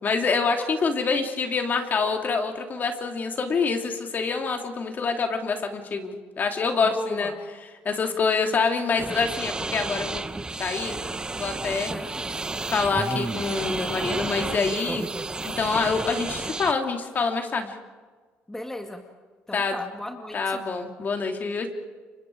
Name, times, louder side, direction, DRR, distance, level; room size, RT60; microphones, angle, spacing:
voice 1, 0.0-7.3 7.8-10.3 10.6-11.1 11.3-11.9 12.7-15.1 15.4-17.7 19.5-19.7 20.3-21.7, left 4 dB, 40° left, 4 dB, 3.3 m, -26 dB
voice 2, 6.8-7.5 11.9-12.4 18.5-19.0 19.5-20.6, left 1 dB, 10° left, 4 dB, 2.1 m, -35 dB
sound 1, 9.0-16.7, right 3 dB, 20° right, 1.1 m, -31 dB
30.0 x 25.0 x 5.0 m, 1.4 s
cardioid pair, 95°, 5 cm